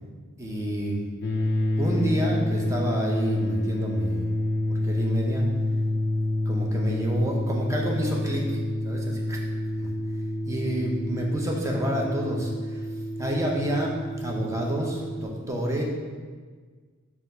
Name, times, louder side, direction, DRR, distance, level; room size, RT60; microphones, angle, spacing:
voice 1, 0.4-1.0 1.8-4.2 4.7-5.4 6.5-8.6 8.8-9.4 9.8-9.9 10.5-12.8 13.2-15.8, right 1 dB, 15° right, -1 dB, 0.4 m, -29 dB
sound 1, 1.2-15.3, left 1 dB, 45° left, 0.4 m, -28 dB
4.3 x 2.3 x 3.8 m, 1.5 s
head